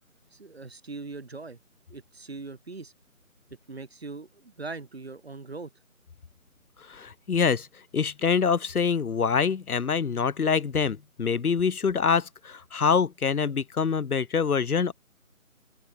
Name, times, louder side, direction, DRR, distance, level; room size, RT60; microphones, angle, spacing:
voice 1, 0.3-1.6 1.9-2.9 3.7-5.7, right 3 dB, 45° right, 1.6 m, -40 dB
voice 2, 6.9-7.7 7.9-14.9, left 6 dB, 90° left, 0.8 m, -25 dB
open air
figure-of-eight pair, 165°, 43 cm